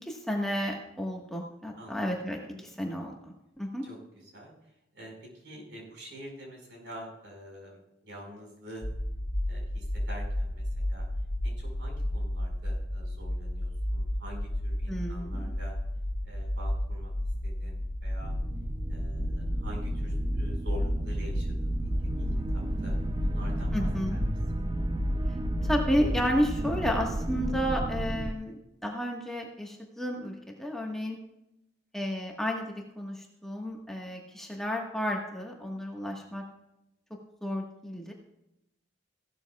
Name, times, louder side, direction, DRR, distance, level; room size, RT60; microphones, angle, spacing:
voice 1, 0.0-2.4 2.8-3.8 14.9-15.5 23.7-24.2 25.6-31.2 31.9-36.4 37.4-38.1, equal, ahead, -1 dB, 1.3 m, -32 dB
voice 2, 3.8-8.9 9.5-11.1 11.4-15.7 16.2-17.1 17.4-18.3 18.9-21.9 22.2-22.3 22.5-24.2 24.5-24.7, equal, 70° right, 0 dB, 4.9 m, -47 dB
sound 1, 8.8-26.2, left 1 dB, 65° left, 2.3 m, -32 dB
sound 2, 18.2-28.3, right 1 dB, 25° right, 0.4 m, -33 dB
16.0 x 12.5 x 2.3 m, 0.86 s
head